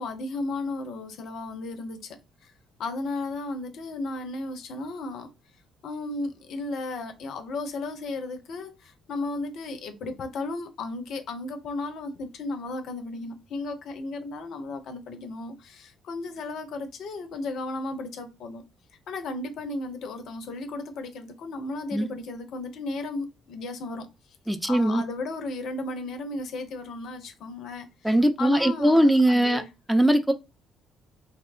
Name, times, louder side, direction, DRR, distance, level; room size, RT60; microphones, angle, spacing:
voice 1, 0.0-2.2 2.8-5.3 5.8-18.6 19.1-24.1 24.6-29.7, left 2 dB, 60° left, 0.5 m, -34 dB
voice 2, 24.5-25.0 28.0-29.6 29.9-30.3, right 1 dB, 5° right, 0.5 m, -20 dB
2.8 x 2.0 x 2.4 m
figure-of-eight pair, 50°, 0 cm